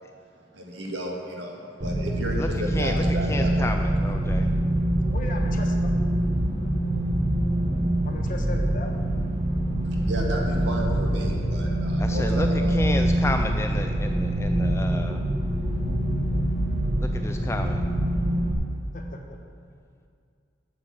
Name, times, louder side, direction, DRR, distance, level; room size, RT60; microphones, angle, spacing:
voice 1, 0.5-3.8 4.2-4.4 9.9-12.8, right 1 dB, 70° right, -1 dB, 1.9 m, -33 dB
sound 1, 1.8-18.5, right 1 dB, 35° right, 1.2 m, -24 dB
voice 2, 2.7-4.5 12.0-15.2 17.0-17.8, left 2 dB, 15° left, 5 dB, 0.3 m, -32 dB
voice 3, 5.1-5.9 8.0-8.9 18.9-19.2, left 1 dB, 45° left, 2 dB, 1.1 m, -36 dB
8.2 x 7.2 x 7.6 m, 2.3 s
head